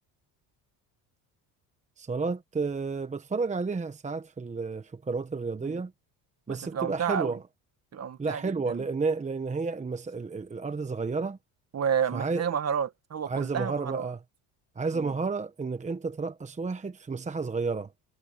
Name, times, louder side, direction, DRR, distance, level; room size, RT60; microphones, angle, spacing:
voice 1, 2.0-5.9 6.5-7.4 8.2-11.4 12.1-12.4 13.3-14.2 14.8-17.9, right 4 dB, 15° right, 1.1 m, -31 dB
voice 2, 6.5-7.4 7.9-8.8 11.7-14.1 14.9-15.1, right 8 dB, 40° right, 1.8 m, -31 dB
cardioid pair, 105°, 41 cm